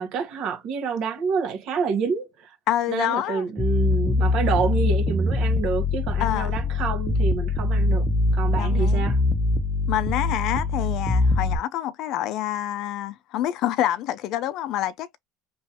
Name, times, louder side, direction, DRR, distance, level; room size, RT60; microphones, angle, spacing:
voice 1, 0.0-2.6 2.9-9.2, right 5 dB, 65° right, 1.2 m, -28 dB
voice 2, 2.7-3.4 6.2-6.6 8.5-9.0 9.9-15.2, left 12 dB, 65° left, 0.5 m, -27 dB
sound 1, 3.6-11.6, left 2 dB, 10° left, 0.6 m, -23 dB
3.1 x 2.5 x 2.8 m
supercardioid pair, 105°, 0 cm